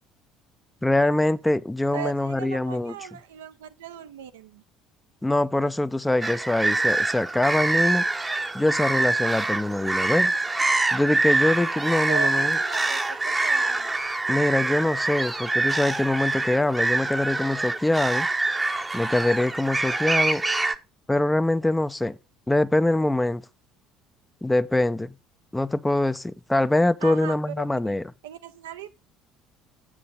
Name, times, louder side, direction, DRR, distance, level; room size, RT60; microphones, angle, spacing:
voice 1, 0.8-2.9 5.2-8.0 8.5-10.3 10.9-12.6 14.3-18.3 18.9-20.4 21.1-22.2 22.5-23.4 24.4-25.1 25.5-28.1, left 1 dB, 10° left, 0.5 m, -23 dB
voice 2, 1.9-4.6 12.1-13.0 13.2-13.9 26.5-26.7 27.0-28.0 28.2-28.9, right 10 dB, 75° right, 0.6 m, -38 dB
sound 1, 6.2-20.7, right 2 dB, 15° right, 0.8 m, -25 dB
7.5 x 6.1 x 5.3 m
figure-of-eight pair, 60°, 0 cm